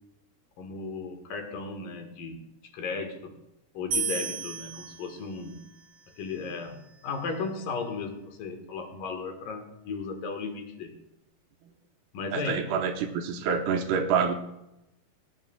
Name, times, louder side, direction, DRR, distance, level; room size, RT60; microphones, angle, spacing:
voice 1, 0.6-2.4 2.7-3.3 3.7-5.6 6.2-10.9 12.1-12.7, left 4 dB, 65° left, 5 dB, 2.7 m, -35 dB
sound 1, 3.9-7.1, right 5 dB, 60° right, 3.6 m, -36 dB
voice 2, 12.3-14.3, right 6 dB, 80° right, 4 dB, 2.8 m, -27 dB
25.0 x 8.7 x 2.2 m, 0.89 s
omnidirectional pair, 4.7 m